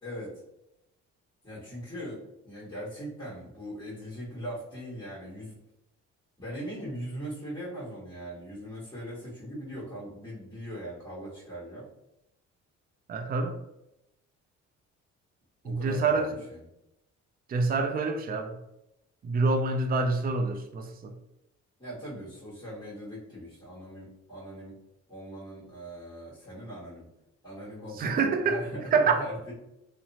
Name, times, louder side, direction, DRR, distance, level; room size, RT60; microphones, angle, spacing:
voice 1, 0.0-0.3 1.4-5.5 6.4-11.9 15.6-16.6 21.8-24.7 25.1-27.1 27.4-29.5, equal, 15° left, -8 dB, 1.4 m, -40 dB
voice 2, 13.1-13.6 15.6-16.4 17.5-18.6 19.2-21.2 28.0-28.6 28.9-29.2, right 4 dB, 30° right, 6 dB, 0.4 m, -26 dB
2.7 x 2.1 x 2.7 m, 0.87 s
cardioid pair, 90°, 30 cm